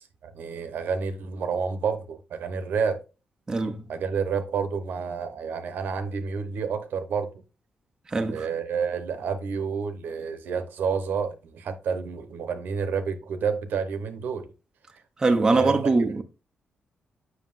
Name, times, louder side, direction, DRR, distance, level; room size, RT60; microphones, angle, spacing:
voice 1, 0.0-3.0 3.9-7.3 8.3-14.5 15.5-15.9, right 6 dB, 70° right, 0.9 m, -29 dB
voice 2, 3.5-3.8 8.1-8.4 15.2-16.2, right 3 dB, 20° right, 0.6 m, -22 dB
7.6 x 6.2 x 2.5 m
wide cardioid pair, 180°, 3 cm